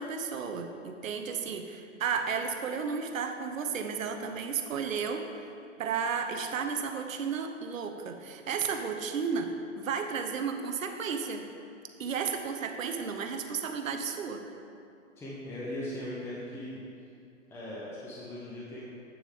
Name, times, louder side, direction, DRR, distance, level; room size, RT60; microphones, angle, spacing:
voice 1, 0.0-5.3 5.8-11.4 12.0-14.4, right 6 dB, 75° right, 6 dB, 1.0 m, -33 dB
voice 2, 15.1-16.8 17.5-18.8, left 1 dB, 5° left, -6 dB, 0.7 m, -39 dB
8.7 x 6.9 x 3.7 m, 2.5 s
hypercardioid pair, 140°, 40 cm